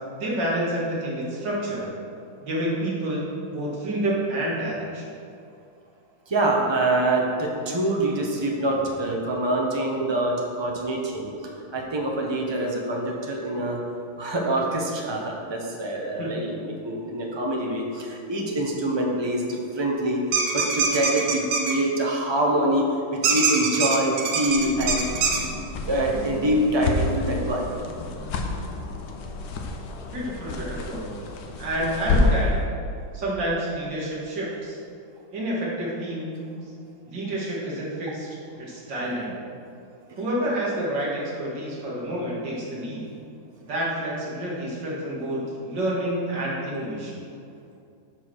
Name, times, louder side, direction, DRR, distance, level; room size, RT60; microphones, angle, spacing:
voice 1, 0.1-1.9 2.4-3.2 3.5-5.1 16.2-16.3 30.1-31.1 31.6-32.6 33.1-34.8 35.3-36.5 37.1-38.3 38.6-39.4 40.2-43.0 43.6-47.2, right 1 dB, 60° right, -5 dB, 2.5 m, -28 dB
voice 2, 6.3-11.3 11.7-13.8 14.2-20.2 20.5-25.0 25.6-27.7 32.1-32.3 40.1-40.2, right 1 dB, 25° right, -1 dB, 0.5 m, -25 dB
sound 1, 20.3-21.7 23.2-25.4, right 5 dB, 90° right, 1.8 m, -23 dB
sound 2, 24.5-32.6, left 3 dB, 60° left, 1.1 m, -29 dB
8.1 x 4.9 x 6.2 m, 2.4 s
omnidirectional pair, 2.2 m